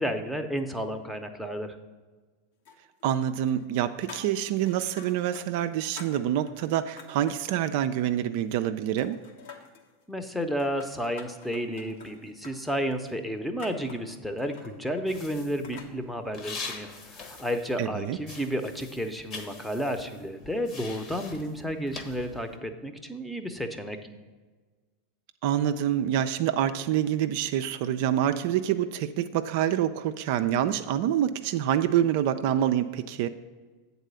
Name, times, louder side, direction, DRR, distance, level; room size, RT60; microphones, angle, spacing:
voice 1, 0.0-1.7 10.1-24.0, equal, ahead, 7 dB, 0.7 m, -32 dB
sound 1, 2.7-3.2 3.5-5.5 5.7-7.5 7.9-8.7 9.0-9.9 10.4-15.9, left 4 dB, 65° left, 1.0 m, -49 dB
voice 2, 3.0-9.2 17.8-18.2 25.4-33.3, right 11 dB, 60° right, 9 dB, 0.3 m, -26 dB
sound 2, 15.1-18.0 18.2-22.6, left 4 dB, 40° left, 1.1 m, -43 dB
8.1 x 4.1 x 6.7 m, 1.4 s
hypercardioid pair, 90°, 0 cm